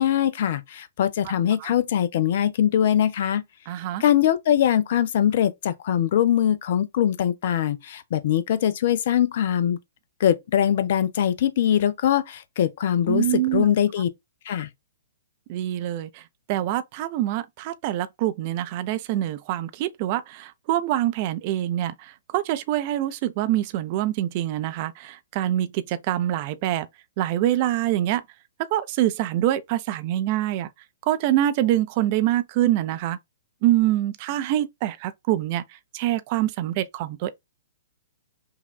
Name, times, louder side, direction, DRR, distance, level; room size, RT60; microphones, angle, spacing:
voice 1, 0.0-3.4 4.0-9.8 10.2-13.3 13.5-14.1 14.5-14.7, left 10 dB, 45° left, 0.5 m, -22 dB
voice 2, 3.7-4.0 13.1-13.7 15.5-26.9 27.2-28.2 28.6-30.7 31.0-33.2 33.6-37.3, right 13 dB, 35° right, 0.4 m, -25 dB
5.5 x 2.2 x 2.2 m
figure-of-eight pair, 115°, 0 cm